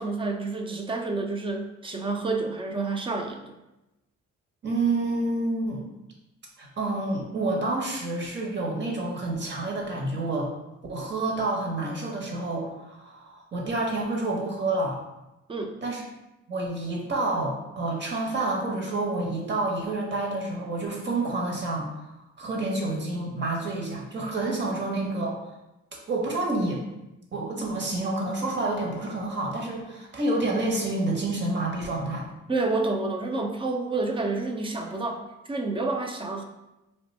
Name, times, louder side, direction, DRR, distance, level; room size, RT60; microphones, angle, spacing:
voice 1, 0.0-3.5 15.5-15.7 32.5-35.2 35.5-36.4, right 3 dB, 20° right, 3 dB, 0.4 m, -29 dB
voice 2, 4.6-5.8 6.6-10.5 10.9-15.0 15.8-16.0 16.5-21.9 22.4-25.4 26.1-26.8 27.3-32.3, right 2 dB, 35° right, -1 dB, 0.9 m, -28 dB
2.5 x 2.2 x 4.0 m, 0.97 s
cardioid pair, 90°, 30 cm